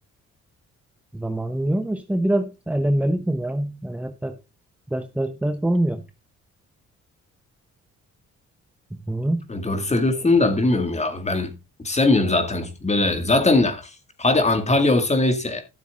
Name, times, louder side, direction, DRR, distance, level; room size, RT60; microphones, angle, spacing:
voice 1, 1.1-4.4 4.9-6.0 8.9-9.5, right 1 dB, 5° right, 0.9 m, -24 dB
voice 2, 9.5-11.5 11.8-15.6, left 2 dB, 20° left, 2.3 m, -21 dB
13.5 x 7.1 x 3.7 m
cardioid pair, 90°, 30 cm